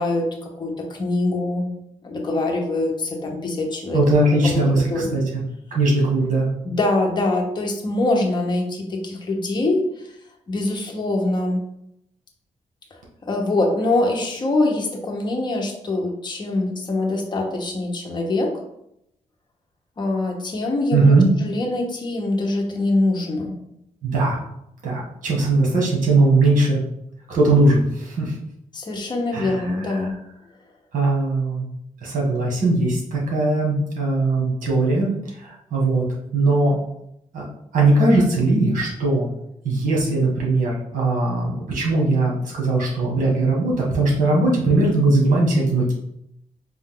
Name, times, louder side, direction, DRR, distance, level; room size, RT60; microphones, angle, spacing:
voice 1, 0.0-1.7 2.0-4.0 4.4-5.2 6.6-9.8 10.5-11.6 13.3-18.6 20.0-21.1 21.4-23.6 28.7-30.2, left 2 dB, 35° left, 0 dB, 0.9 m, -24 dB
voice 2, 3.9-5.4 5.7-6.5 20.9-21.3 24.0-24.4 24.8-26.8 27.3-28.3 29.3-30.1 30.9-31.7 32.0-35.1 35.4-36.0 36.3-36.8 37.3-37.4 37.7-39.3 39.6-45.9, right 2 dB, 80° right, -3 dB, 1.6 m, -19 dB
4.5 x 2.6 x 3.8 m, 0.78 s
wide cardioid pair, 140°, 13 cm